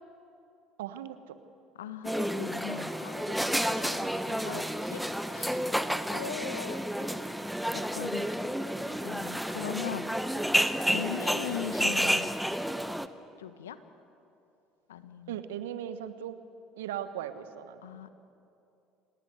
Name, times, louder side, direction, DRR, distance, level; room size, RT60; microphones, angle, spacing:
voice 1, 0.8-1.4 15.3-16.3 16.8-17.8, right 10 dB, 75° right, 11 dB, 1.3 m, -38 dB
voice 2, 1.8-5.0 5.3-5.6 6.1-7.2 7.7-8.3 9.0-10.2 10.9-12.3 13.4-13.8 14.9-15.4 17.8-18.1, left 9 dB, 80° left, 12 dB, 1.2 m, -40 dB
sound 1, 2.0-13.1, equal, ahead, 1.2 m, -30 dB
27.0 x 19.5 x 8.1 m, 2.7 s
hypercardioid pair, 65°, 0 cm